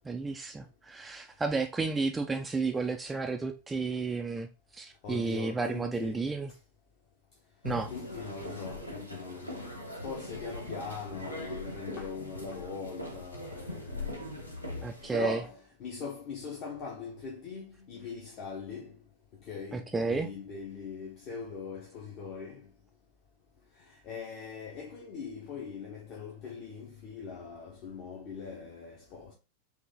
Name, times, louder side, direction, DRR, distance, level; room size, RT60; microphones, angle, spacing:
voice 1, 0.0-6.5 7.6-7.9 14.8-15.4 19.7-20.3, right 4 dB, 10° right, 0.4 m, -32 dB
voice 2, 5.0-6.3 7.9-9.7 10.0-14.3 15.1-19.0 19.4-22.7 23.9-29.3, left 5 dB, 40° left, 1.0 m, -41 dB
sound 1, 7.6-15.2, left 1 dB, 85° left, 1.0 m, -41 dB
5.0 x 2.7 x 3.7 m
figure-of-eight pair, 90°, 0 cm